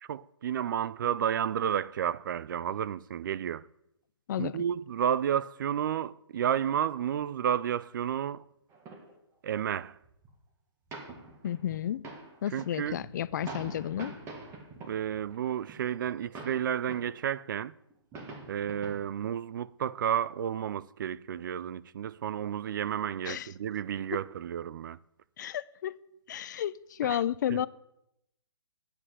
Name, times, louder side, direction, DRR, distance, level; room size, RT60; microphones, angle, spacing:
voice 1, 0.0-3.6 4.4-8.4 9.4-10.0 12.5-13.0 14.9-17.7 18.5-25.0 27.0-27.2 27.5-27.6, right 9 dB, 45° right, 0.4 m, -31 dB
sound 1, 8.7-9.1 9.8-9.9 10.0-10.4 10.9-17.2 17.6-17.7 17.9-19.2 19.8-19.9, right 3 dB, 20° right, 1.7 m, -45 dB
voice 2, 11.4-12.0 12.4-14.1 23.2-23.5 24.1-24.2 25.4-26.0 26.3-27.7, left 10 dB, 40° left, 0.4 m, -32 dB
9.5 x 7.6 x 8.0 m
hypercardioid pair, 140°, 15 cm